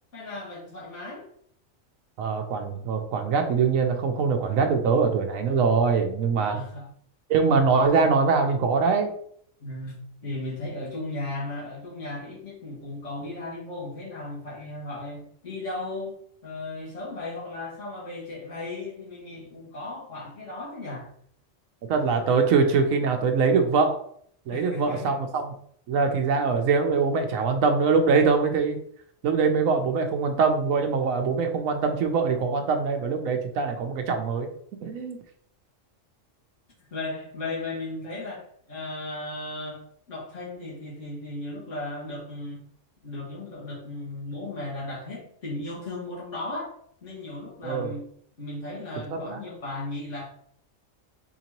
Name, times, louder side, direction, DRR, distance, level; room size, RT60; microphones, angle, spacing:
voice 1, 0.1-1.3 6.4-6.9 9.6-16.2 16.4-21.1 24.5-25.2 36.9-39.8 40.1-42.6 43.0-46.7 47.0-48.1 48.4-50.3, left 2 dB, 70° left, -5 dB, 2.1 m, -36 dB
voice 2, 2.2-6.6 7.3-9.1 21.9-24.0 24.5-25.5 25.9-28.8 29.2-34.5 34.8-35.2 47.6-47.9 49.1-49.4, right 5 dB, 90° right, 5 dB, 1.0 m, -23 dB
4.5 x 3.9 x 2.9 m, 0.65 s
omnidirectional pair, 1.4 m